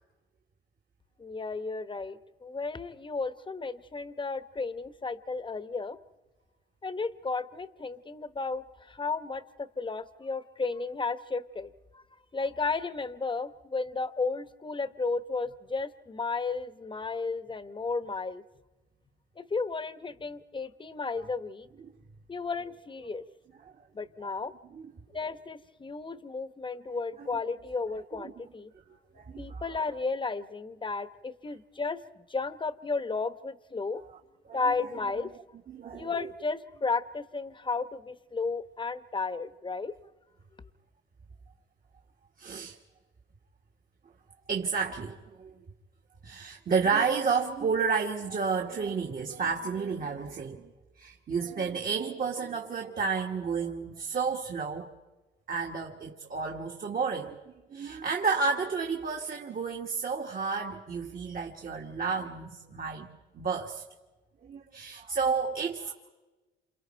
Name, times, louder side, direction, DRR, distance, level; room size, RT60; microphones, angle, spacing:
voice 1, 1.2-6.0 6.8-12.0 12.3-18.4 19.4-21.7 22.3-23.2 23.9-24.5 25.1-28.7 29.4-34.0 34.5-35.3 35.9-39.9, left 4 dB, 25° left, 12 dB, 1.1 m, -33 dB
voice 2, 29.1-29.7 34.5-34.7 35.7-36.1 42.4-42.8 44.5-45.6 46.2-50.7 51.0-54.9 55.5-63.1 63.3-63.8 64.4-65.9, right 5 dB, 45° right, 2 dB, 1.8 m, -31 dB
28.5 x 28.0 x 4.5 m, 1.2 s
cardioid pair, 90°, 20 cm